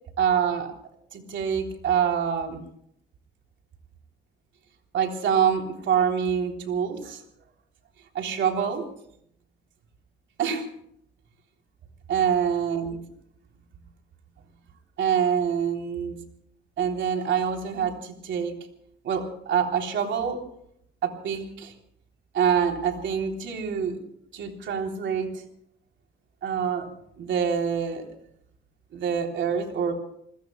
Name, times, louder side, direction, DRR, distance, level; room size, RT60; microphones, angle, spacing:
voice 1, 0.2-0.7 1.1-2.6 4.9-7.2 8.1-8.8 10.4-10.7 12.1-13.0 15.0-16.2 16.8-18.5 19.0-20.4 21.0-21.7 22.3-24.0 24.3-25.3 26.4-26.9 27.2-28.1 28.9-29.9, right 7 dB, 70° right, 3 dB, 3.5 m, -26 dB
29.5 x 20.5 x 2.3 m, 0.71 s
cardioid pair, 90°, 20 cm